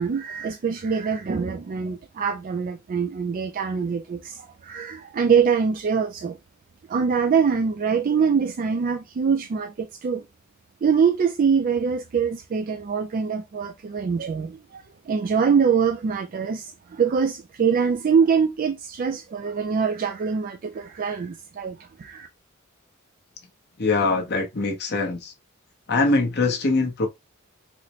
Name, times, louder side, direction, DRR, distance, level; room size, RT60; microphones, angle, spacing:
voice 1, 0.0-6.4 6.9-10.2 10.8-22.3, right 6 dB, 40° right, 0.3 m, -24 dB
voice 2, 23.8-25.3 25.9-27.1, left 3 dB, 55° left, 0.9 m, -22 dB
4.0 x 2.1 x 2.9 m
head